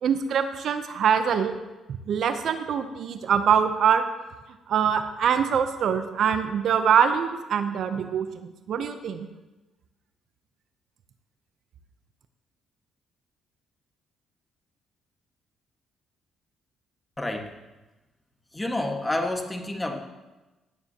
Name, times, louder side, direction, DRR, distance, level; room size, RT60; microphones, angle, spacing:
voice 1, 0.0-1.5 2.1-4.0 4.7-9.3, right 7 dB, 65° right, 9 dB, 0.8 m, -24 dB
voice 2, 17.2-17.5 18.5-20.0, left 1 dB, 15° left, 3 dB, 1.7 m, -29 dB
15.5 x 9.5 x 2.9 m, 1.1 s
supercardioid pair, 65°, 0 cm